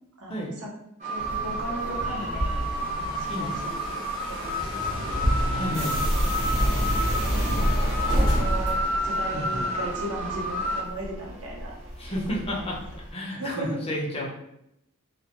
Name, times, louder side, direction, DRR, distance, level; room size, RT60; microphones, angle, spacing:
voice 1, 0.2-0.7 1.0-4.0 4.3-5.6 6.5-11.8 12.3-12.8 13.3-13.8, right 1 dB, 80° right, -2 dB, 0.7 m, -38 dB
sound 1, 1.0-10.8, equal, 35° right, 0.6 m, -30 dB
sound 2, 1.2-13.1, equal, 55° right, 1.0 m, -29 dB
sound 3, 2.4-9.1, left 1 dB, 80° left, 0.5 m, -38 dB
voice 2, 5.5-5.9 9.3-9.6 12.0-12.8 13.1-14.3, left 1 dB, 25° left, -2 dB, 0.5 m, -31 dB
2.1 x 2.0 x 2.9 m, 0.79 s
head